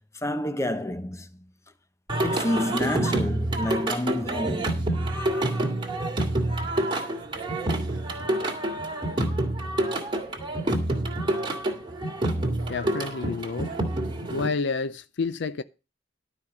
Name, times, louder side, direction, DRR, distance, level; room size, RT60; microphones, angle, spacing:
voice 1, 0.1-1.5 2.2-4.8, left 1 dB, 15° left, 0.9 m, -29 dB
Singing, 2.1-14.5, right 1 dB, 25° right, 2.1 m, -27 dB
voice 2, 12.7-13.7 14.3-15.6, left 4 dB, 65° left, 0.5 m, -29 dB
12.0 x 5.2 x 7.1 m
head